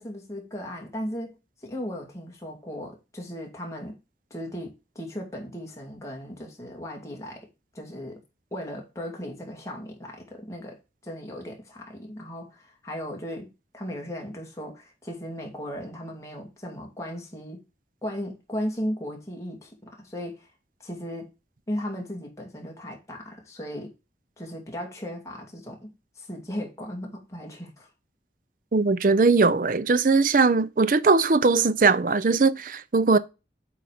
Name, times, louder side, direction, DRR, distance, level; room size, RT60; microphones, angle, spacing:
voice 1, 0.0-1.4 1.6-4.0 4.3-7.5 7.7-8.2 8.5-10.8 11.0-13.5 13.7-17.6 18.0-20.5 20.8-21.3 21.7-23.9 24.4-27.9, equal, 15° left, 2.4 m, -36 dB
voice 2, 28.7-33.2, right 4 dB, 50° right, 0.5 m, -20 dB
8.4 x 4.2 x 5.0 m
head